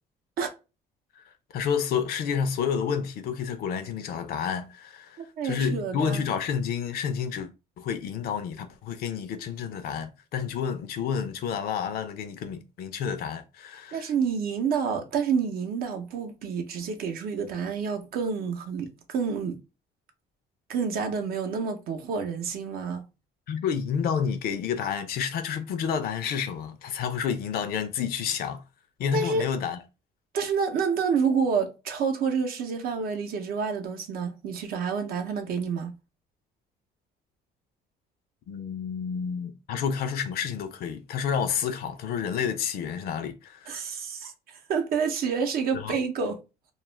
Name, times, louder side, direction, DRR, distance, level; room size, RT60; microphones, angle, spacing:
voice 1, 1.5-5.2 5.4-7.5 7.8-14.1 23.5-28.6 29.0-29.8 38.5-43.8 45.7-45.9, left 7 dB, 65° left, 0.5 m, -30 dB
voice 2, 5.2-6.3 13.9-19.6 20.7-23.0 29.1-29.4 30.3-36.0 43.7-46.4, right 6 dB, 65° right, 0.6 m, -28 dB
2.3 x 2.0 x 3.0 m
cardioid pair, 110°, 17 cm